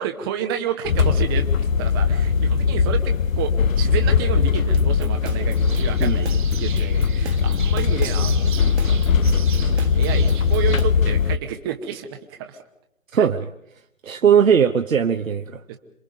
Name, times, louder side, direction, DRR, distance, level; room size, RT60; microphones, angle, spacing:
voice 1, 0.0-1.5 1.8-8.5 9.6-12.6 13.2-13.3 15.7-15.8, right 9 dB, 15° right, 5 dB, 1.0 m, -30 dB
sound 1, 0.9-11.4, left 5 dB, 75° left, 0.9 m, -20 dB
sound 2, 4.7-10.8, right 5 dB, 55° right, 1.6 m, -37 dB
sound 3, 5.5-10.9, right 9 dB, 35° right, 1.2 m, -39 dB
voice 2, 13.1-13.5 14.0-15.6, right 7 dB, 70° right, 6 dB, 1.1 m, -18 dB
27.0 x 22.0 x 5.2 m, 0.75 s
figure-of-eight pair, 145°, 41 cm